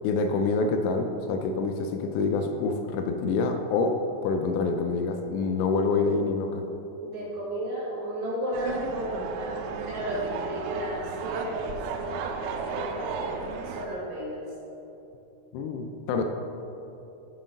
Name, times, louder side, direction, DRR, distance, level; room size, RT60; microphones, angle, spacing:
voice 1, 0.0-6.6 15.5-16.2, left 4 dB, 85° left, 5 dB, 2.8 m, -26 dB
voice 2, 7.0-9.6 9.9-14.4, equal, 70° right, -7 dB, 1.8 m, -33 dB
sound 1, 8.5-13.9, right 5 dB, 85° right, 3.1 m, -34 dB
7.0 x 5.7 x 5.2 m, 2.9 s
omnidirectional pair, 5.7 m